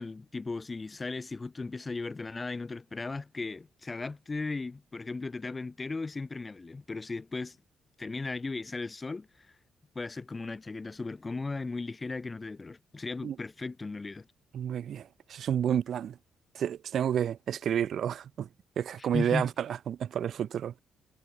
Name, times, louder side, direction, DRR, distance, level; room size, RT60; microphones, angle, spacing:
voice 1, 0.0-7.6 8.0-9.5 9.9-14.3 19.0-19.5, left 3 dB, 25° left, 1.1 m, -36 dB
voice 2, 14.5-16.2 16.5-18.5 18.8-20.8, right 9 dB, 60° right, 1.7 m, -30 dB
cardioid pair, 105°, 0 cm